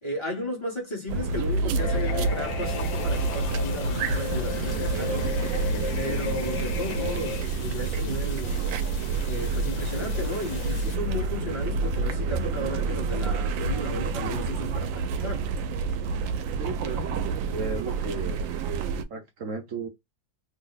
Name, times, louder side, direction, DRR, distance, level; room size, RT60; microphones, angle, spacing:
voice 1, 0.0-5.3 6.0-8.6 9.3-15.5, left 1 dB, 25° left, 0.8 m, -34 dB
sound 1, 1.1-19.0, right 4 dB, 90° right, 1.3 m, -28 dB
sound 2, 1.7-7.4, left 10 dB, 75° left, 1.3 m, -35 dB
sound 3, 2.6-11.0, left 9 dB, 90° left, 1.4 m, -45 dB
voice 2, 16.6-18.4 19.1-19.9, right 4 dB, 65° right, 0.8 m, -35 dB
3.2 x 2.0 x 3.9 m
omnidirectional pair, 2.0 m